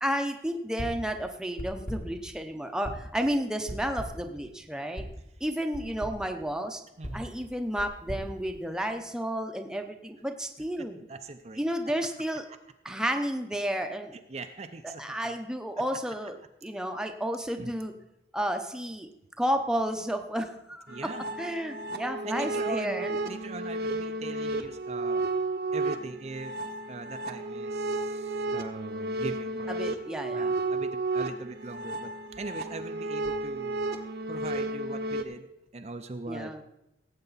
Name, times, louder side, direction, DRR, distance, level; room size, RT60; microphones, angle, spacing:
voice 1, 0.0-5.0 5.4-6.8 7.1-11.0 11.6-12.4 12.8-14.2 15.0-16.4 16.6-17.9 18.3-19.1 19.4-21.1 21.4-23.1 29.8-30.5 36.3-36.6, equal, 5° right, 5 dB, 0.7 m, -31 dB
sound 1, 0.8-1.1 1.6-2.2 2.8-3.2 3.7-4.3 5.0-5.2 5.7-6.3 7.0-9.1, equal, 45° left, 2.1 m, -39 dB
voice 2, 7.0-7.3 10.8-11.6 14.1-15.3 17.6-17.7 20.9-21.2 22.2-25.3 25.7-26.5 26.9-30.0 30.3-33.8 34.3-35.5 35.7-36.6, right 3 dB, 35° right, 7 dB, 0.5 m, -41 dB
sound 2, 20.9-35.2, right 2 dB, 60° right, 0.9 m, -33 dB
17.5 x 8.1 x 4.0 m, 0.86 s
head